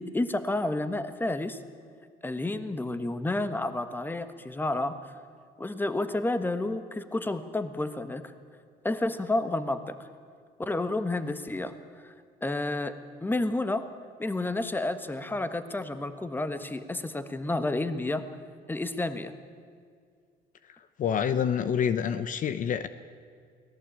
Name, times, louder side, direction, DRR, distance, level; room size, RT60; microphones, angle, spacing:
voice 1, 0.0-1.6 2.2-5.0 5.6-8.3 8.8-9.9 10.6-11.7 12.0-12.1 12.4-12.9 13.2-13.9 14.2-18.2 18.7-19.3, left 2 dB, 10° left, 11 dB, 1.4 m, -30 dB
voice 2, 21.0-22.9, left 8 dB, 50° left, 12 dB, 0.9 m, -27 dB
24.0 x 18.0 x 8.7 m, 2.2 s
cardioid pair, 110°, 17 cm